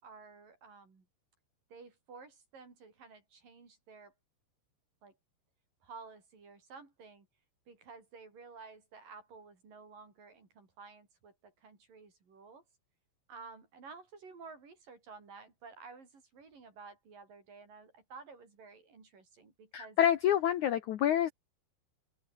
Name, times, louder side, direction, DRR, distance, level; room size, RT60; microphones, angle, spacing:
voice 1, 0.0-1.1 1.7-4.1 5.0-5.2 5.8-7.3 7.7-12.6 13.3-20.0, right 4 dB, 50° right, 7.3 m, -53 dB
voice 2, 19.7-21.3, left 10 dB, 85° left, 1.7 m, -27 dB
open air
omnidirectional pair, 5.2 m